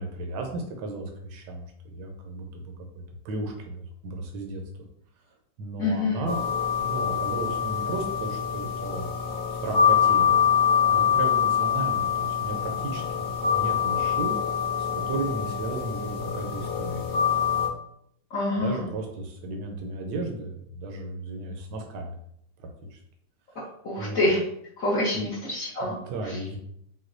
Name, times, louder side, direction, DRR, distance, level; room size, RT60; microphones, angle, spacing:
voice 1, 0.0-1.6 1.9-2.7 3.2-4.6 5.6-6.5 6.8-9.1 9.6-10.2 10.9-14.3 15.1-17.0 18.6-22.1 22.9-23.0 24.0-24.2 25.1-25.3 25.8-26.6, right 2 dB, 80° right, 2 dB, 1.3 m, -34 dB
voice 2, 5.8-6.3 18.3-18.9 23.8-24.4 24.8-25.9 26.2-26.4, left 2 dB, 55° left, -9 dB, 1.4 m, -26 dB
sound 1, 6.3-17.7, left 8 dB, 90° left, 0.5 m, -25 dB
6.1 x 2.3 x 2.6 m, 0.72 s
omnidirectional pair, 1.9 m